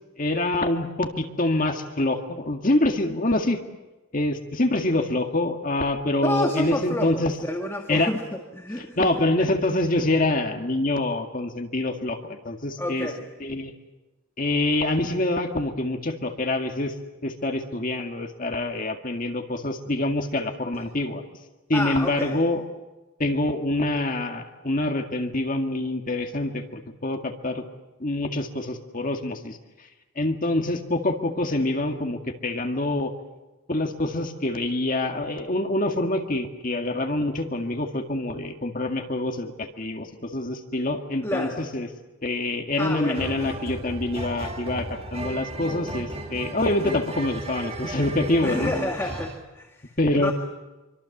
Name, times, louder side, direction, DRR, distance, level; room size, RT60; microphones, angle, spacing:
voice 1, 0.2-3.6 4.1-7.3 7.9-8.1 9.0-13.1 13.4-13.7 14.4-16.9 17.2-21.2 21.7-22.6 23.2-27.6 28.0-29.6 30.2-33.1 33.7-41.9 42.2-48.7 50.0-50.3, left 2 dB, 40° left, 4 dB, 2.0 m, -26 dB
voice 2, 6.2-9.1 12.8-13.3 21.7-22.4 41.2-41.6 42.8-43.3 48.4-50.3, left 1 dB, 10° left, 2 dB, 1.9 m, -29 dB
sound 1, 43.1-49.4, right 1 dB, 30° right, 2.0 m, -35 dB
26.5 x 24.5 x 7.3 m, 1.1 s
head